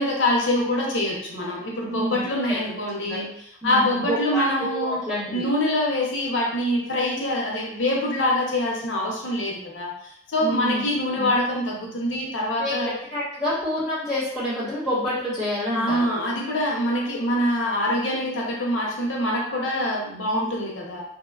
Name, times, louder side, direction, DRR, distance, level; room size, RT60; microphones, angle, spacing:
voice 1, 0.0-3.3 3.6-5.0 5.3-9.9 10.3-12.9 15.7-21.0, left 1 dB, 85° left, -2 dB, 0.7 m, -24 dB
voice 2, 1.9-2.2 3.1-3.2 3.6-5.4 10.4-10.8 11.2-11.3 12.6-12.7 13.1-16.0, left 1 dB, 5° right, -12 dB, 1.3 m, -28 dB
2.9 x 2.1 x 2.3 m, 0.70 s
head